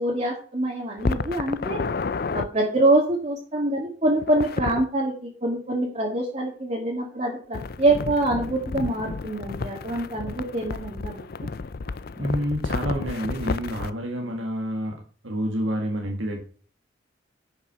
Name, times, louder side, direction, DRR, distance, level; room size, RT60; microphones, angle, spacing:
voice 1, 0.0-1.8 2.3-11.3, right 2 dB, 35° right, -2 dB, 2.0 m, -25 dB
sound 1, 1.0-2.5 4.2-4.9 7.5-13.9, left 4 dB, 50° left, 0.5 m, -31 dB
voice 2, 12.2-16.4, equal, 85° right, 2 dB, 1.6 m, -29 dB
10.0 x 5.8 x 5.7 m, 0.43 s
head